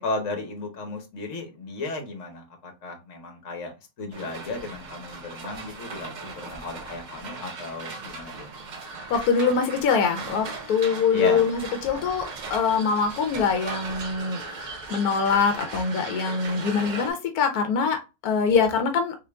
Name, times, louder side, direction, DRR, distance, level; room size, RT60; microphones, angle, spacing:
voice 1, 0.0-3.7 4.0-8.5 11.1-11.4, left 2 dB, 60° left, 3 dB, 1.4 m, -34 dB
sound 1, 4.1-17.1, right 3 dB, 50° right, 0.5 m, -38 dB
voice 2, 9.1-12.2 12.5-19.2, left 5 dB, 90° left, 6 dB, 1.2 m, -24 dB
3.7 x 3.7 x 2.2 m, 0.27 s
omnidirectional pair, 1.5 m